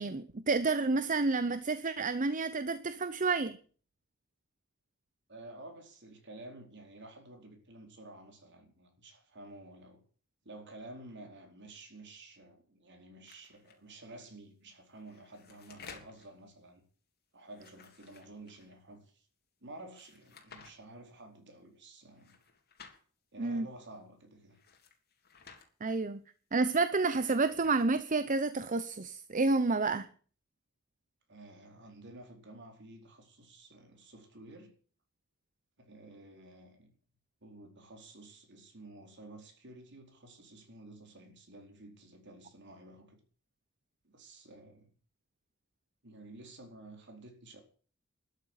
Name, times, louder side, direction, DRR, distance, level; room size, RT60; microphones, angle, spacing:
voice 1, 0.0-3.6 23.4-23.7 25.8-26.2 26.5-30.1, right 3 dB, 40° right, 0.8 m, -30 dB
voice 2, 5.3-10.0 10.4-16.8 17.3-19.3 19.6-22.4 23.3-24.6 31.3-34.7 35.8-36.9 37.4-43.2 44.0-44.9 46.0-47.6, right 2 dB, 55° right, 4.4 m, -52 dB
sound 1, 13.3-13.8 14.9-16.3 17.4-18.7 19.9-20.7 22.1-23.0 24.5-25.7 26.8-27.9, left 5 dB, 50° left, 3.3 m, -55 dB
13.0 x 8.5 x 10.0 m
head